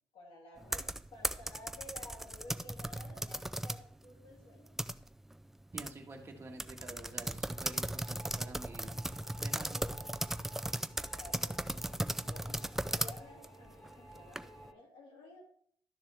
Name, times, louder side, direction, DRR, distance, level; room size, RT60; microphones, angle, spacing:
voice 1, 0.1-4.8 8.8-10.5 11.0-15.4, left 1 dB, 80° left, -1 dB, 2.4 m, -54 dB
sound 1, 0.6-3.9 4.3-5.3 5.8-5.9 6.2-6.3 6.6-14.7, right 1 dB, 5° right, 0.3 m, -37 dB
voice 2, 5.7-8.9 9.4-9.8, right 2 dB, 25° right, 1 dB, 1.6 m, -48 dB
sound 2, 5.9-14.7, right 1 dB, 40° left, 3.1 m, -58 dB
12.0 x 6.7 x 3.4 m, 0.63 s
cardioid pair, 140°, 9 cm